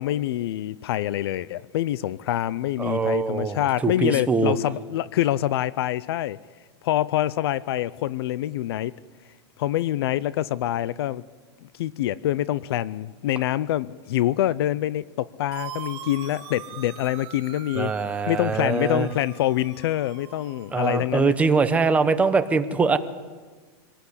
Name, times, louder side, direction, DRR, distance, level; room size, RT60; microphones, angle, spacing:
voice 1, 0.0-6.4 6.8-8.9 9.6-11.2 11.8-17.9 18.3-21.3 22.8-22.9, left 13 dB, 60° left, 0.6 m, -26 dB
voice 2, 2.8-4.5 17.7-19.1 20.7-23.0, right 4 dB, 10° right, 0.9 m, -23 dB
sound 1, 15.5-21.3, right 9 dB, 35° right, 4.4 m, -42 dB
25.5 x 19.0 x 8.2 m
supercardioid pair, 165°, 15 cm